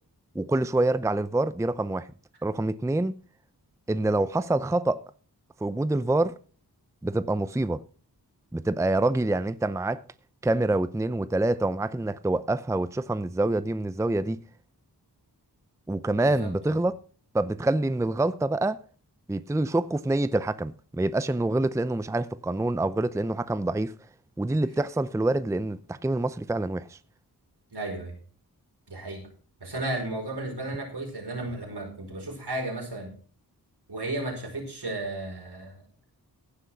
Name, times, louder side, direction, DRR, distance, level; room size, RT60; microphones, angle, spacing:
voice 1, 0.3-2.1 2.4-3.2 3.9-5.0 5.6-6.3 7.0-7.8 8.5-10.0 10.4-14.4 15.9-17.0 17.3-18.8 19.3-23.9 24.4-27.0, right 2 dB, 10° right, 0.5 m, -26 dB
voice 2, 16.1-16.8 27.7-28.2 28.9-29.3 29.6-33.2 33.9-35.8, right 2 dB, 75° right, 5.2 m, -34 dB
15.5 x 6.4 x 5.8 m
wide cardioid pair, 50°, 40 cm